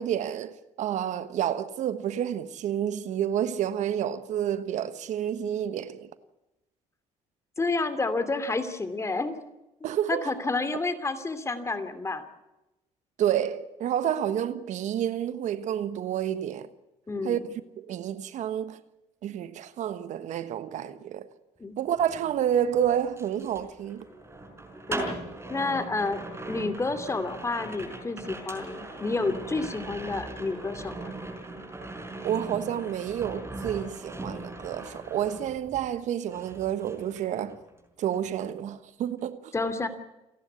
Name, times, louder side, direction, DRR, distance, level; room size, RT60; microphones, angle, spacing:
voice 1, 0.0-6.1 9.8-10.3 13.2-16.7 17.2-18.8 19.2-21.3 21.8-24.1 32.2-37.6 38.0-39.5, right 10 dB, 65° right, 1.3 m, -29 dB
voice 2, 7.6-9.3 10.1-12.2 17.1-17.5 21.6-21.8 24.9-25.1 25.5-26.2 26.5-31.1 39.5-39.9, left 3 dB, 20° left, 2.8 m, -30 dB
sound 1, 21.9-36.0 36.3-37.8 38.1-38.4, right 2 dB, 20° right, 5.4 m, -40 dB
29.0 x 11.0 x 9.5 m
cardioid pair, 100°, 13 cm